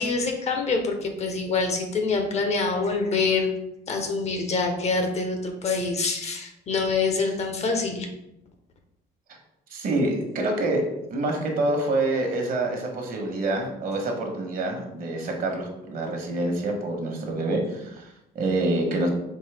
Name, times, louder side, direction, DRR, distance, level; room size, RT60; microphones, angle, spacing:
voice 1, 0.0-3.6 3.9-8.1, left 4 dB, 40° left, 4 dB, 0.8 m, -25 dB
voice 2, 9.7-10.8 11.1-19.1, right 2 dB, 55° right, 2 dB, 1.1 m, -26 dB
4.6 x 3.2 x 3.4 m, 0.86 s
cardioid pair, 110°, 17 cm